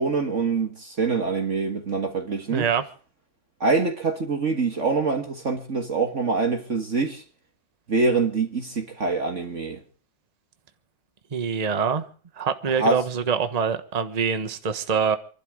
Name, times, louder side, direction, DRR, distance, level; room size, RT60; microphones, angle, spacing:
voice 1, 0.0-2.7 3.6-7.2 7.9-9.8 12.8-13.0, right 4 dB, 40° right, 1.8 m, -25 dB
voice 2, 2.5-2.8 11.3-12.1 12.4-15.2, right 6 dB, 25° right, 1.1 m, -25 dB
28.0 x 12.0 x 3.7 m
omnidirectional pair, 2.2 m